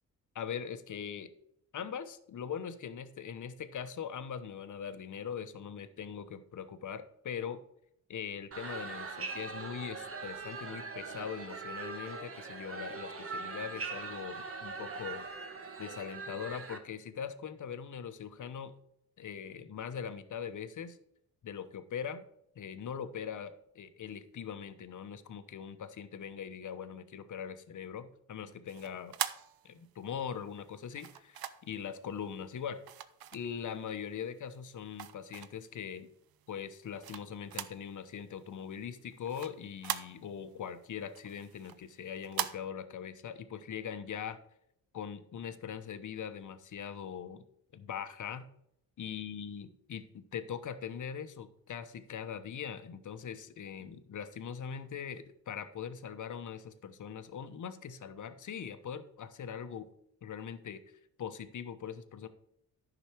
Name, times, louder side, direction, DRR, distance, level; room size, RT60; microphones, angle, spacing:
voice 1, 0.3-1.3 1.7-7.6 8.1-15.3 15.8-18.7 19.2-21.0 21.4-22.2 22.6-29.2 29.6-32.8 33.3-36.1 36.5-44.4 44.9-47.4 47.7-48.5 49.0-59.9 60.2-60.8 61.2-62.3, left 7 dB, 55° left, 11 dB, 1.0 m, -41 dB
sound 1, 8.5-16.8, right 4 dB, 35° right, 1.3 m, -41 dB
sound 2, 28.7-30.1 30.9-31.8 32.8-33.9 34.4-35.8 36.3-37.9 38.2-38.3 38.6-40.5 40.9-42.5, right 11 dB, 70° right, 0.7 m, -41 dB
10.5 x 6.1 x 4.5 m, 0.74 s
cardioid pair, 95°, 37 cm